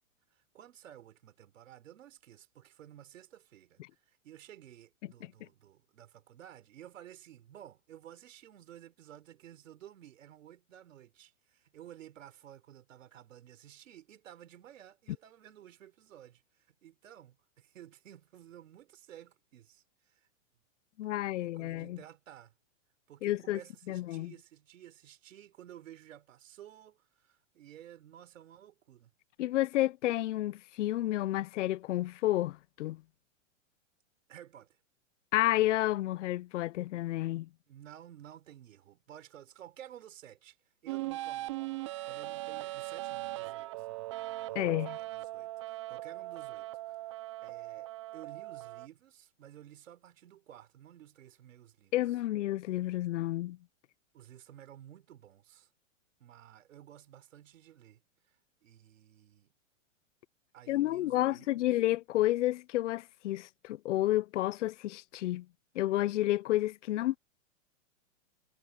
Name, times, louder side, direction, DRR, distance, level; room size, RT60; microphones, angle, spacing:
voice 1, 0.3-20.3 21.0-22.5 23.1-29.1 34.3-34.8 37.7-40.6 40.8-43.9 44.5-51.9 54.1-55.7 56.2-58.4 58.6-59.5 60.5-61.7, right 11 dB, 70° right, 3.7 m, -54 dB
voice 2, 21.0-22.0 23.2-23.6 23.9-24.3 29.4-33.0 35.3-37.5 44.5-45.0 51.9-53.6 60.7-65.5 65.7-67.2, left 15 dB, 65° left, 0.7 m, -30 dB
sound 1, 40.9-48.9, right 17 dB, 25° right, 0.3 m, -39 dB
hypercardioid pair, 140°, 39 cm